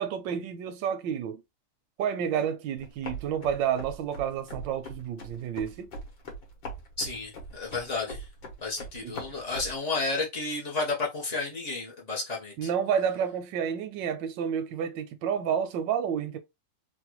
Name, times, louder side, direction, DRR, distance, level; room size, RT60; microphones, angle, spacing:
voice 1, 0.0-1.4 2.0-5.9 9.0-9.2 12.6-16.4, right 8 dB, 90° right, 1.3 m, -30 dB
sound 1, 2.8-9.8, equal, 85° left, 1.8 m, -41 dB
voice 2, 7.0-8.2 8.6-12.7, left 3 dB, 60° left, 0.4 m, -32 dB
3.7 x 2.2 x 2.9 m
omnidirectional pair, 1.9 m